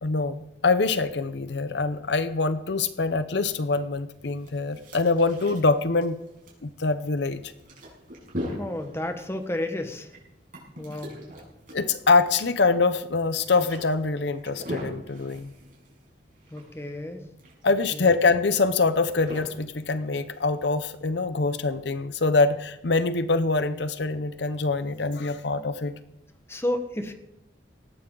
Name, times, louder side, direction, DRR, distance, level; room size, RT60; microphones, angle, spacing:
voice 1, 0.0-6.2 6.6-7.4 11.7-15.5 17.6-25.9, left 3 dB, 65° left, 12 dB, 0.7 m, -24 dB
sound 1, 4.1-20.6, equal, 45° right, 6.0 m, -41 dB
voice 2, 8.6-10.1 10.8-11.2 16.5-17.3 17.9-18.2 26.5-27.1, left 1 dB, 15° left, 6 dB, 1.4 m, -31 dB
18.5 x 14.0 x 3.9 m, 0.89 s
head